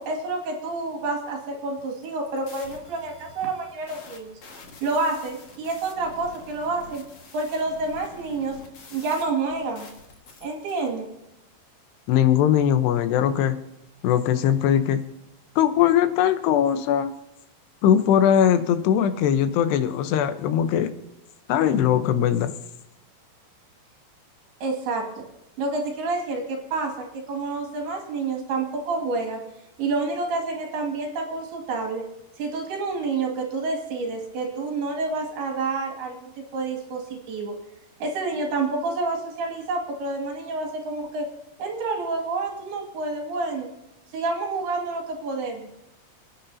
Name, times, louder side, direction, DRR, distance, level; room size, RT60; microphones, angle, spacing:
voice 1, 0.0-4.3 4.8-7.0 7.3-8.6 8.9-9.9 10.4-11.1 24.6-25.2 25.6-29.4 29.8-32.0 32.4-37.5 38.0-41.3 41.6-43.7 44.1-45.7, right 3 dB, 75° right, 2 dB, 4.1 m, -28 dB
sound 1, 1.9-10.9, left 4 dB, 50° left, 2.0 m, -47 dB
voice 2, 12.1-13.6 14.0-15.0 15.6-17.1 17.8-20.9 21.5-22.5, left 9 dB, 85° left, 10 dB, 3.0 m, -20 dB
29.5 x 9.9 x 2.7 m, 0.89 s
omnidirectional pair, 4.7 m